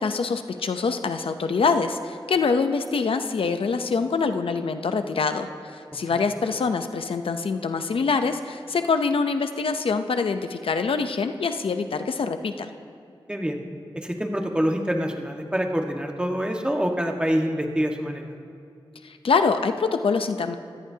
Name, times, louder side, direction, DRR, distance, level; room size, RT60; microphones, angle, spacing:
voice 1, 0.0-12.7 19.0-20.6, left 4 dB, 80° left, 8 dB, 0.7 m, -25 dB
voice 2, 13.3-13.6 13.9-18.3, equal, 10° right, 2 dB, 1.6 m, -26 dB
24.0 x 16.5 x 2.8 m, 2.5 s
wide cardioid pair, 65°, 9 cm